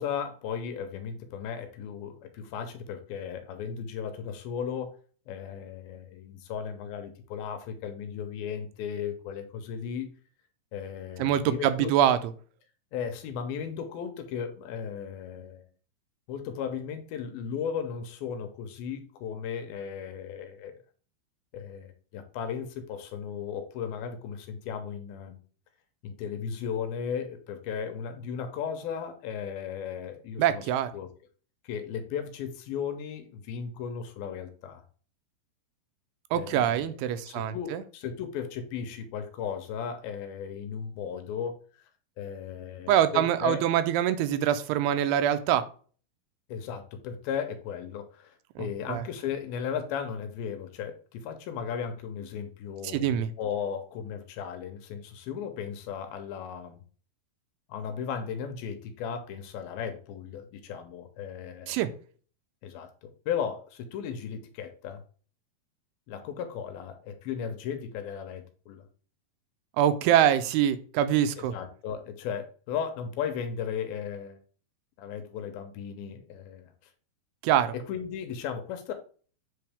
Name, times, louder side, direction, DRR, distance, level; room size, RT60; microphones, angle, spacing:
voice 1, 0.0-4.9 5.3-10.2 10.7-11.9 12.9-15.7 16.3-20.8 21.5-25.4 26.0-31.1 31.6-34.8 36.3-37.0 37.3-41.6 42.2-43.6 46.5-56.8 57.7-61.8 62.6-65.0 66.1-68.9 71.4-74.4 75.0-76.7 77.7-78.9, left 7 dB, 80° left, 7 dB, 2.4 m, -36 dB
voice 2, 11.2-12.2 30.4-30.9 36.3-37.8 42.9-45.7 48.6-49.0 52.9-53.3 61.7-61.9 69.8-71.6 77.4-77.7, right 10 dB, 90° right, 12 dB, 2.6 m, -24 dB
7.6 x 3.8 x 3.4 m, 0.42 s
omnidirectional pair, 4.5 m